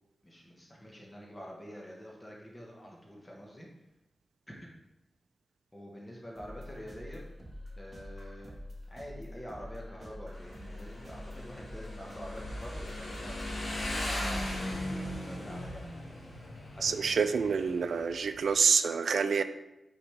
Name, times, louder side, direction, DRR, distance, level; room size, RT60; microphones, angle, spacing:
voice 1, 0.2-3.7 4.5-4.6 5.7-7.2 7.8-8.5 8.9-14.9 15.2-15.9 16.8-17.4, equal, 20° left, -2 dB, 1.1 m, -47 dB
sound 1, 6.4-14.7, left 1 dB, 35° right, 1.2 m, -46 dB
Motorcycle, 10.3-18.6, left 1 dB, 65° left, 1.5 m, -38 dB
voice 2, 16.8-19.4, right 5 dB, 90° right, 10 dB, 0.3 m, -27 dB
5.9 x 5.1 x 3.2 m, 0.94 s
wide cardioid pair, 110°, 0 cm